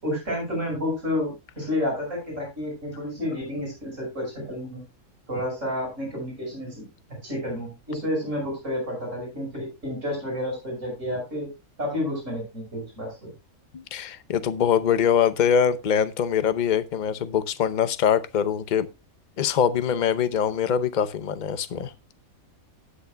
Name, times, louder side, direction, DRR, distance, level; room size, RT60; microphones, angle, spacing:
voice 1, 0.0-4.8 5.3-6.8 7.2-11.5 11.8-13.3, left 1 dB, 60° right, 5.9 m, -30 dB
voice 2, 13.7-18.9 19.4-21.9, left 8 dB, 45° left, 0.7 m, -23 dB
18.5 x 6.7 x 2.2 m
omnidirectional pair, 1.5 m